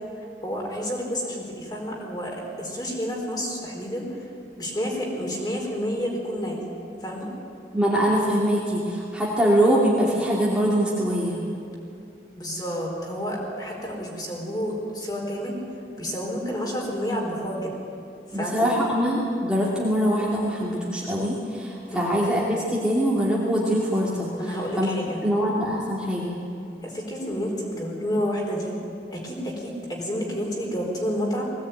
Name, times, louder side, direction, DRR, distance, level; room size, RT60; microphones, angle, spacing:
voice 1, 0.4-4.3 4.6-6.6 7.0-7.3 12.4-15.6 16.0-17.7 18.3-18.7 21.9-22.1 24.4-25.2 26.8-28.8 29.1-31.4, equal, 25° left, -1 dB, 4.2 m, -30 dB
voice 2, 7.7-11.4 18.3-24.9 25.2-26.4, equal, 5° right, -6 dB, 2.6 m, -23 dB
20.0 x 17.5 x 9.2 m, 2.6 s
head